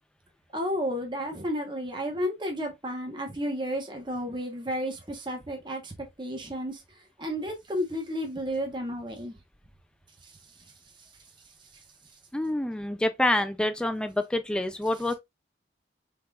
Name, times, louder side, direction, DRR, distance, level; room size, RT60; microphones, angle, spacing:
voice 1, 0.5-6.8 7.2-9.4 10.2-10.3, equal, 25° right, 1.1 m, -32 dB
voice 2, 12.3-15.1, left 1 dB, 5° left, 0.3 m, -27 dB
4.8 x 3.7 x 2.3 m
head